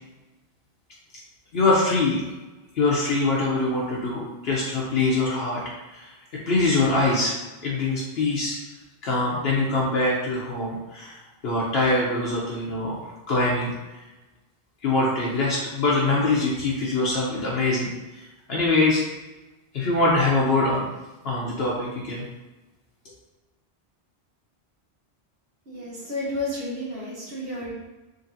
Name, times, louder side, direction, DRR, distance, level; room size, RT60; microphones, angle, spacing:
voice 1, 1.5-2.3 2.7-5.6 5.9-6.2 6.5-8.6 9.0-11.2 11.4-13.7 14.8-19.0 19.7-20.9 21.2-22.3, left 2 dB, 70° left, -5 dB, 0.9 m, -23 dB
voice 2, 25.7-27.7, left 1 dB, 65° right, -6 dB, 1.2 m, -31 dB
3.8 x 3.3 x 2.7 m, 1.1 s
omnidirectional pair, 1.1 m